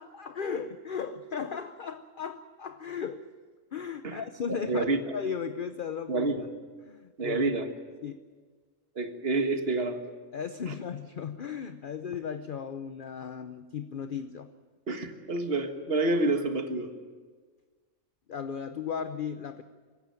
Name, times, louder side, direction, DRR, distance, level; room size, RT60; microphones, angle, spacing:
voice 1, 0.0-3.3 3.7-4.9 5.1-6.3 6.8-7.5 8.0-8.2 10.3-14.5 18.3-19.6, left 6 dB, 45° left, 9 dB, 0.8 m, -36 dB
voice 2, 4.5-5.0 6.1-6.5 7.2-7.7 9.0-10.0 10.7-10.8 14.9-16.9, right 2 dB, 50° right, 6 dB, 1.8 m, -28 dB
25.0 x 15.0 x 9.0 m, 1.5 s
omnidirectional pair, 1.4 m